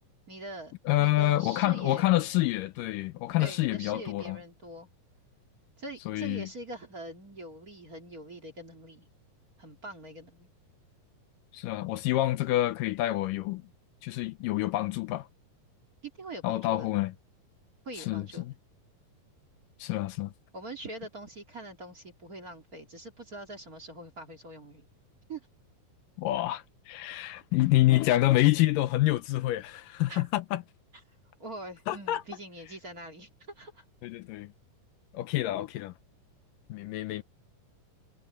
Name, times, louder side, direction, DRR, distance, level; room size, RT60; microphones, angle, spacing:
voice 1, 0.3-2.1 3.4-4.9 5.8-9.1 9.6-10.5 16.0-17.0 17.8-18.5 20.5-24.9 25.3-25.5 30.1-30.3 31.4-33.3 33.6-33.8, right 1 dB, 30° right, 2.4 m, -43 dB
voice 2, 0.9-4.4 6.1-6.5 11.5-13.6 14.0-15.3 16.4-17.1 18.0-18.5 19.8-20.3 26.2-30.6 31.9-32.2 34.0-34.5 35.1-35.9 36.7-37.2, left 16 dB, 80° left, 2.3 m, -27 dB
omnidirectional pair, 4.0 m